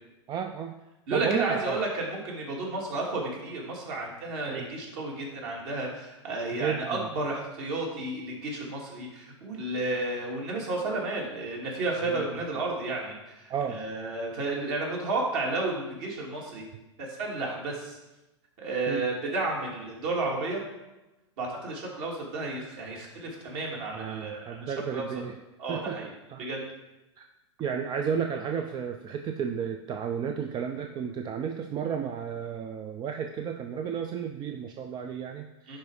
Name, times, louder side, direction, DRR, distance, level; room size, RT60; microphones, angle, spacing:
voice 1, 0.3-0.8 1.1-1.8 4.5-4.7 6.5-7.1 12.0-12.3 13.5-13.8 18.9-19.0 23.9-25.3 25.7-26.0 26.3-26.4 27.2-27.3 27.6-35.8, right 7 dB, 30° right, 6 dB, 0.5 m, -33 dB
voice 2, 1.1-16.7 17.0-18.0 18.6-20.6 21.4-24.7 24.9-25.1 25.6-26.1 26.4-26.6 35.7-35.8, right 2 dB, 50° right, -2 dB, 2.7 m, -32 dB
10.5 x 4.3 x 4.9 m, 1.0 s
figure-of-eight pair, 95°, 16 cm